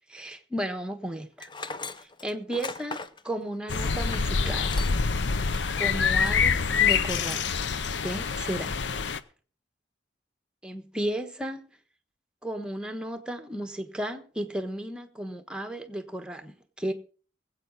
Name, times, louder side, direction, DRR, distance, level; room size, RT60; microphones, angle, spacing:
voice 1, 0.1-1.5 2.0-3.0 3.2-4.8 5.8-7.5 8.0-8.8 10.6-11.6 12.4-16.9, right 1 dB, 5° right, 1.2 m, -34 dB
Tools, 1.4-5.1 5.5-5.6 6.1-6.5 6.8-7.5, left 4 dB, 25° left, 0.6 m, -39 dB
sound 1, 3.7-9.2, left 5 dB, 75° left, 0.7 m, -26 dB
22.0 x 8.1 x 4.0 m
head